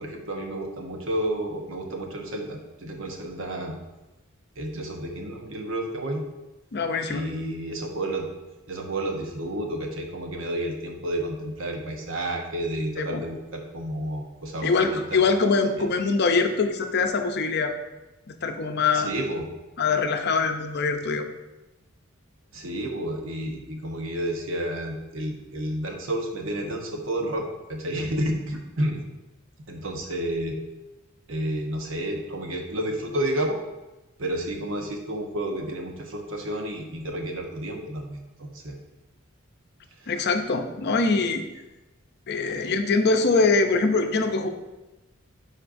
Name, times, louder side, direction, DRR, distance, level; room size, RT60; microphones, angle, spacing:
voice 1, 0.0-3.7 4.6-6.3 7.1-8.3 8.7-15.2 15.8-15.9 18.9-19.5 22.5-29.0 29.7-30.6 31.3-33.6 34.2-38.8 40.0-40.1 42.5-42.8, right 1 dB, 65° right, 2 dB, 1.0 m, -31 dB
voice 2, 6.7-7.2 13.0-13.2 14.6-17.8 18.3-19.1 19.8-21.3 40.1-41.4 42.3-44.5, left 4 dB, 50° left, 6 dB, 0.5 m, -23 dB
9.6 x 4.2 x 2.6 m, 1.0 s
head